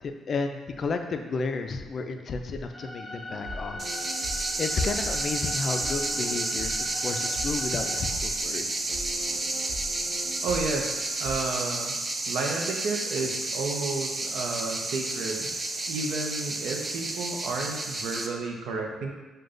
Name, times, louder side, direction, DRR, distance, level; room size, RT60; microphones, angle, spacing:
voice 1, 0.0-3.9 4.6-8.7, left 4 dB, 50° left, 6 dB, 0.3 m, -32 dB
sound 1, 2.7-8.0, left 1 dB, 5° left, 0.7 m, -41 dB
sound 2, 3.3-11.4, equal, 55° right, 1.4 m, -41 dB
sound 3, 3.8-18.3, right 2 dB, 30° right, 0.4 m, -31 dB
voice 2, 10.4-11.9 12.3-15.5 15.9-19.1, right 3 dB, 80° right, 1 dB, 0.5 m, -32 dB
6.4 x 2.2 x 2.5 m, 1.2 s
cardioid pair, 90°, 0 cm